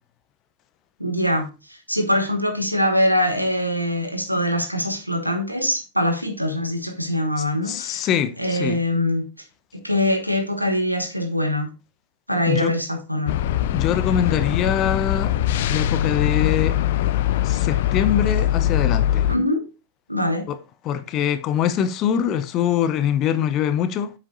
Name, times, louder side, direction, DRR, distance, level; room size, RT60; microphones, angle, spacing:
voice 1, 1.0-8.1 8.4-9.3 9.7-11.7 12.3-13.4 19.3-19.7 20.1-20.5, left 1 dB, 90° right, 1.3 m, -23 dB
voice 2, 7.7-8.8 12.5-12.7 13.7-15.4 15.7-16.8 17.4-19.2 20.5-20.6 20.8-24.1, left 9 dB, 35° left, 0.9 m, -23 dB
sound 1, 13.3-19.4, left 12 dB, 55° left, 0.5 m, -22 dB
8.4 x 7.3 x 2.7 m
figure-of-eight pair, 90°, 0 cm